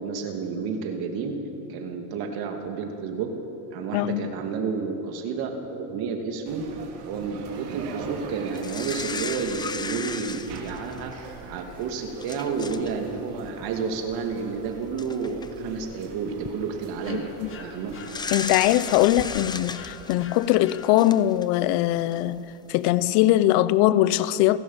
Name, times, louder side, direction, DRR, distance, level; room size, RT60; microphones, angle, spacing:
voice 1, 0.0-1.4 1.7-3.3 3.7-17.3 17.6-17.9, right 5 dB, 50° right, 2.6 m, -31 dB
sound 1, 6.4-19.2, right 4 dB, 90° right, 3.4 m, -42 dB
sound 2, 8.5-11.2 11.8-11.9 12.2-12.9 13.2-13.4 14.5-14.6 15.0-15.5 16.2-16.5 18.0-21.7 22.1-22.2, left 4 dB, 10° left, 0.5 m, -35 dB
sound 3, 17.0-21.4, left 6 dB, 30° left, 1.6 m, -46 dB
voice 2, 17.1-17.5 18.3-22.4 22.7-24.6, left 14 dB, 55° left, 0.8 m, -21 dB
30.0 x 12.0 x 7.3 m
supercardioid pair, 135°, 45 cm